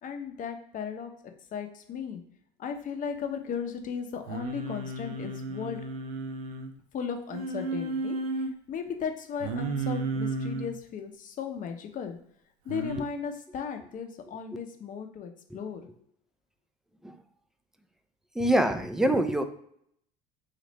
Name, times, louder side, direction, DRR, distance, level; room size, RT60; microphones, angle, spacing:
voice 1, 0.0-2.2 2.6-5.8 6.9-12.2 12.6-15.9, left 7 dB, 45° left, 5 dB, 0.7 m, -36 dB
Singing, 4.3-6.7 7.3-8.5 9.4-10.7 12.7-13.0, right 3 dB, 85° right, 0.5 m, -33 dB
voice 2, 18.3-19.4, right 1 dB, ahead, 8 dB, 0.4 m, -24 dB
3.1 x 2.5 x 4.0 m, 0.68 s
hypercardioid pair, 75°, 19 cm